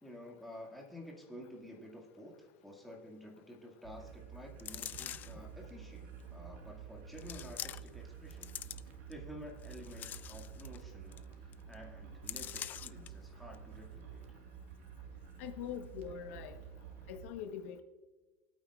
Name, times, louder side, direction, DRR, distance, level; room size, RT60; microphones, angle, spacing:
voice 1, 0.0-8.5 9.1-14.2, left 1 dB, ahead, -2 dB, 2.1 m, -51 dB
sound 1, 3.8-17.3, right 7 dB, 85° right, 1.7 m, -50 dB
sound 2, 4.6-5.4 6.2-6.3 7.2-8.0 8.3-9.1 9.6-10.8 11.1-11.2 11.5-11.7 12.3-13.1 13.5-13.6, left 10 dB, 25° left, 0.3 m, -44 dB
voice 2, 15.4-16.6 17.1-17.8, left 8 dB, 75° left, 6 dB, 1.2 m, -43 dB
24.0 x 8.8 x 2.5 m, 1.3 s
supercardioid pair, 160°, 7 cm